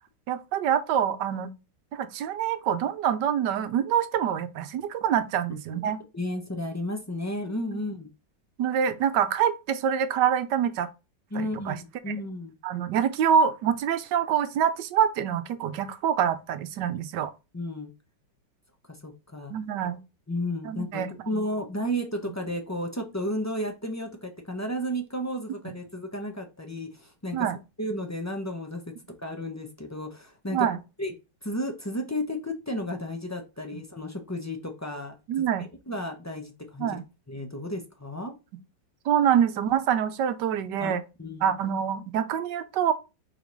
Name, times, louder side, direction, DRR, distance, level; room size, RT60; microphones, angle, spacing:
voice 1, 0.3-1.5 1.9-6.0 8.6-10.9 11.3-11.8 12.6-17.3 19.5-20.0 20.6-21.1 21.3-21.4 27.3-27.6 30.5-30.8 35.3-35.6 36.8-37.0 39.0-41.0 41.4-42.9, right 8 dB, 70° right, 1.3 m, -25 dB
voice 2, 6.1-8.1 11.3-11.8 12.0-12.5 17.5-17.9 19.0-19.5 20.3-27.5 27.8-28.8 29.2-30.7 31.0-31.1 31.4-35.5 35.9-37.0 37.3-38.3 40.8-40.9 41.2-41.5, equal, 25° left, 0.3 m, -33 dB
5.0 x 4.0 x 5.2 m
omnidirectional pair, 2.1 m